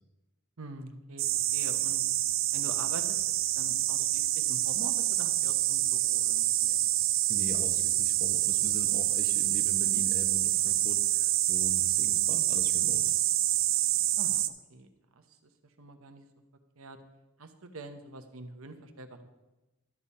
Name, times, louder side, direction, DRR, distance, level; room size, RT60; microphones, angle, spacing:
voice 1, 0.6-2.0 2.5-3.2 3.5-7.1 14.2-16.3 16.8-17.0 17.4-19.3, right 2 dB, 80° right, 7 dB, 1.0 m, -45 dB
sound 1, 1.2-14.5, right 14 dB, 65° right, 0.5 m, -27 dB
voice 2, 7.3-13.1, left 1 dB, 40° left, 6 dB, 0.9 m, -42 dB
12.5 x 7.2 x 4.2 m, 1.0 s
head